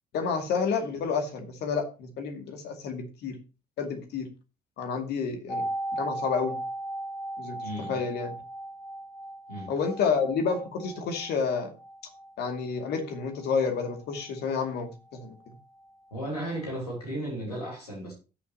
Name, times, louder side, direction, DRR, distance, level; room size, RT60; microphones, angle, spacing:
voice 1, 0.1-3.3 3.8-4.3 4.8-5.7 5.9-6.6 7.4-7.6 7.9-8.3 9.7-11.7 12.4-15.4, left 5 dB, 60° left, 4 dB, 2.3 m, -29 dB
sound 1, 5.5-15.2 15.5-15.6, right 1 dB, 20° left, 2.2 m, -38 dB
voice 2, 7.6-8.0 9.5-9.7 16.1-18.1, right 1 dB, 85° left, -1 dB, 3.1 m, -35 dB
16.5 x 7.1 x 2.8 m, 0.31 s
figure-of-eight pair, 45°, 19 cm